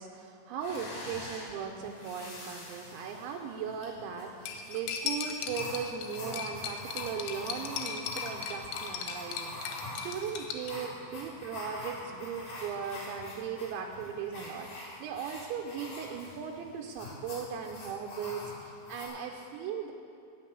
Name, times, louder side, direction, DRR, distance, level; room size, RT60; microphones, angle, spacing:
voice 1, 0.0-19.9, right 6 dB, 85° right, 2 dB, 2.8 m, -38 dB
sound 1, 0.6-19.1, left 2 dB, 45° left, 4.1 m, -45 dB
Cutlery silverware, 4.5-10.7, left 6 dB, 80° left, 3.2 m, -38 dB
17.5 x 6.1 x 7.0 m, 2.6 s
omnidirectional pair, 5.5 m